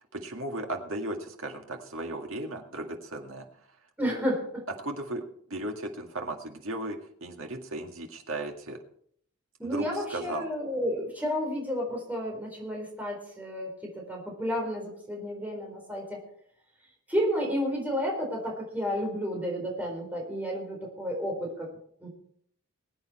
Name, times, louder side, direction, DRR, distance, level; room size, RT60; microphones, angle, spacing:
voice 1, 0.0-3.5 4.8-5.2 5.5-8.8 9.6-10.5, right 1 dB, 60° right, 3 dB, 2.0 m, -36 dB
voice 2, 4.0-4.6 9.6-16.2 17.1-21.7 22.0-22.1, equal, 5° right, -1 dB, 4.1 m, -31 dB
21.5 x 8.7 x 4.3 m, 0.64 s
head